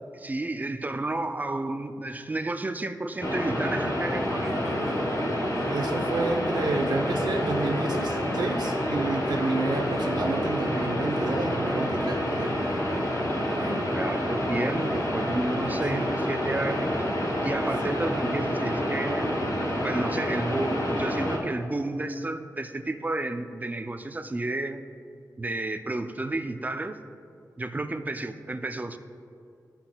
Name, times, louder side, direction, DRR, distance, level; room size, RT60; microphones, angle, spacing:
voice 1, 0.1-4.5 13.3-17.0 17.4-19.4 19.8-24.8 25.4-27.0 27.6-29.0, right 2 dB, 25° right, 8 dB, 0.4 m, -31 dB
sound 1, 3.2-21.4, equal, 55° left, 1.1 m, -28 dB
Laughter, 3.2-18.2, equal, 5° left, 1.3 m, -45 dB
voice 2, 5.7-12.5 15.9-16.0, right 3 dB, 80° right, 0 dB, 0.7 m, -30 dB
13.5 x 5.7 x 2.2 m, 2.5 s
wide cardioid pair, 105°, 7 cm